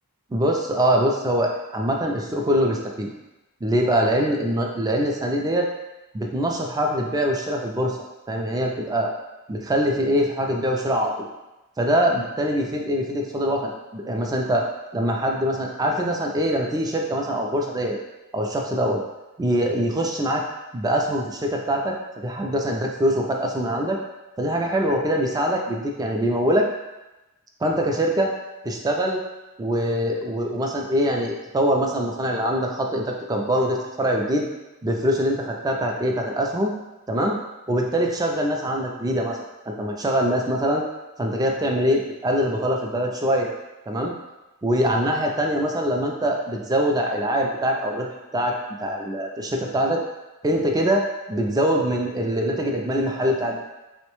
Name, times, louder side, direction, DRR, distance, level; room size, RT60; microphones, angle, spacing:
voice 1, 0.3-3.1 3.6-5.7 6.1-8.0 8.3-9.1 9.5-11.3 11.8-18.0 18.3-19.0 19.4-20.4 20.7-21.9 22.2-24.0 24.4-26.7 27.6-28.3 28.6-29.2 29.6-34.5 34.8-36.8 37.1-37.4 37.7-39.4 39.7-40.8 41.2-43.5 43.9-44.1 44.6-48.1 48.3-48.5 48.8-50.0 50.4-53.6, equal, 15° right, 1 dB, 0.4 m, -23 dB
4.5 x 2.1 x 3.0 m, 1.0 s
head